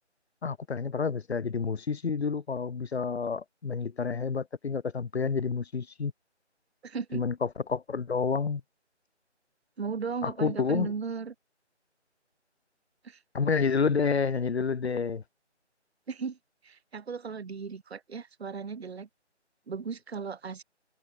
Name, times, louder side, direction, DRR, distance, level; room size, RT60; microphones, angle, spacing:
voice 1, 0.4-6.1 7.1-8.6 10.2-10.9 13.3-15.2, left 5 dB, 65° left, 0.6 m, -29 dB
voice 2, 6.8-7.2 9.8-11.3 13.0-13.2 16.1-16.4 16.6-19.1 19.7-20.6, right 5 dB, 60° right, 0.6 m, -36 dB
figure-of-eight pair, 160°, 35 cm